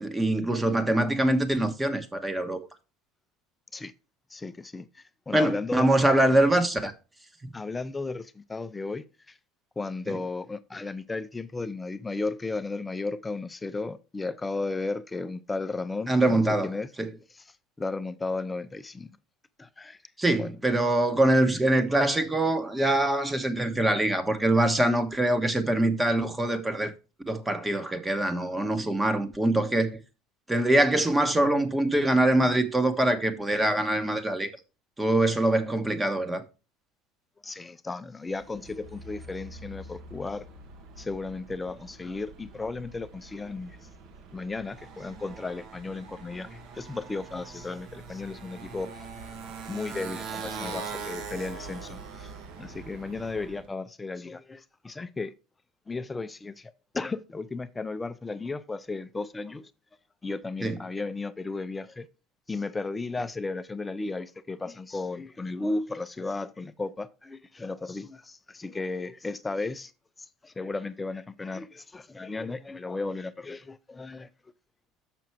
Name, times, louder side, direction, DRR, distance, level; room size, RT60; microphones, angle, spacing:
voice 1, 0.0-2.6 5.3-6.9 7.4-7.5 10.1-10.2 16.1-16.7 17.0-17.1 20.2-26.9 27.3-30.0 30.5-34.5 35.0-36.4 60.6-60.8, right 1 dB, 10° right, 1.2 m, -24 dB
voice 2, 4.3-5.9 7.5-9.4 9.8-16.9 17.3-17.5 17.8-19.1 19.6-20.0 20.4-20.5 37.4-40.5 41.0-43.9 44.3-49.1 49.7-52.3 52.6-55.3 55.9-59.7 60.2-62.1 62.5-69.9 70.2-74.3, left 3 dB, 15° left, 0.5 m, -35 dB
Motorcycle, 38.3-53.7, right 4 dB, 60° right, 1.6 m, -43 dB
6.9 x 6.1 x 4.5 m
supercardioid pair, 105°, 0 cm